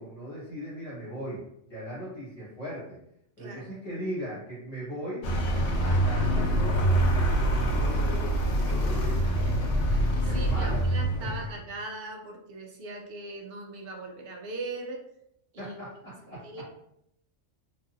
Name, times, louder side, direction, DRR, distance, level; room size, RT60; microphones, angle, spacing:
voice 1, 0.0-3.0 3.4-5.3 5.8-9.5 9.9-10.8 11.2-11.5 15.6-16.6, equal, 30° left, -10 dB, 1.2 m, -39 dB
Vehicle, 5.2-11.6, right 1 dB, 75° left, 0.9 m, -25 dB
voice 2, 9.9-15.0 15.5-15.8 16.4-16.6, right 2 dB, 60° right, 2 dB, 0.6 m, -39 dB
3.2 x 2.6 x 2.4 m, 0.75 s
omnidirectional pair, 1.3 m